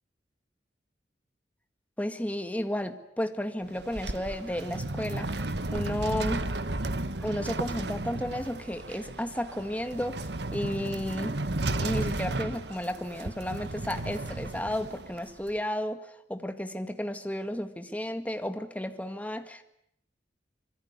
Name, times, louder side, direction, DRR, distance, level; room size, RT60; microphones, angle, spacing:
voice 1, 2.0-6.4 7.2-11.3 11.7-19.6, left 1 dB, 10° left, 8 dB, 1.8 m, -33 dB
sound 1, 3.6-15.5, right 2 dB, 70° right, 1.5 m, -34 dB
25.5 x 23.0 x 9.7 m, 0.76 s
head